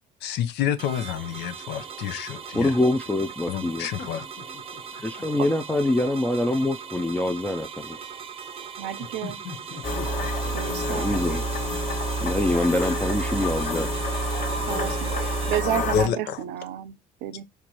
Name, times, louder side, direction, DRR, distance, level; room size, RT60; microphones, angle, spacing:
voice 1, 0.2-2.7 3.5-4.2 15.9-16.4, left 9 dB, 80° left, 0.6 m, -28 dB
sound 1, 0.8-15.6, right 7 dB, 35° right, 0.6 m, -39 dB
voice 2, 2.5-3.9 5.0-8.0 10.9-11.5 12.2-13.9, left 1 dB, 10° left, 0.4 m, -25 dB
sound 2, 3.8-6.0 9.0-11.4, left 7 dB, 65° left, 1.1 m, -42 dB
voice 3, 8.8-9.4 10.5-11.3 14.7-15.1 15.5-17.4, right 11 dB, 85° right, 0.6 m, -31 dB
sound 3, 9.8-16.1, equal, 50° left, 1.2 m, -28 dB
4.5 x 2.5 x 2.8 m
cardioid pair, 110°, 17 cm